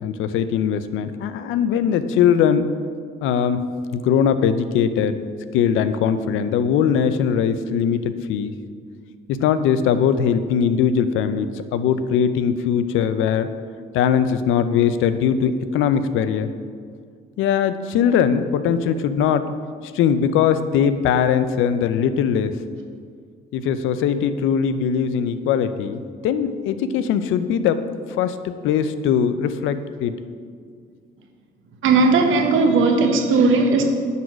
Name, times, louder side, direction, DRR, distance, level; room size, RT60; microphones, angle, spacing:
voice 1, 0.0-2.7 3.2-3.6 3.9-5.2 5.5-8.5 9.3-13.5 13.9-16.5 17.4-19.4 19.9-22.5 23.5-27.8 28.2-30.1, left 8 dB, 90° left, 12 dB, 0.5 m, -20 dB
voice 2, 31.8-33.8, right 3 dB, 80° right, 4 dB, 1.1 m, -17 dB
9.3 x 4.1 x 6.1 m, 2.1 s
cardioid pair, 90°, 20 cm